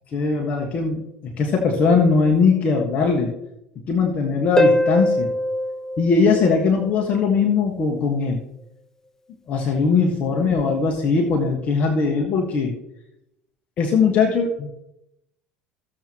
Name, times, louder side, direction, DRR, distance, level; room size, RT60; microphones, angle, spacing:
voice 1, 0.1-3.3 3.9-5.3 6.0-8.4 9.5-12.7 13.8-14.7, left 4 dB, 45° left, 1 dB, 1.5 m, -20 dB
Harp, 4.6-7.1 10.6-10.7, left 1 dB, 15° left, 0.6 m, -21 dB
15.5 x 7.5 x 3.0 m, 0.86 s
hypercardioid pair, 70°, 3 cm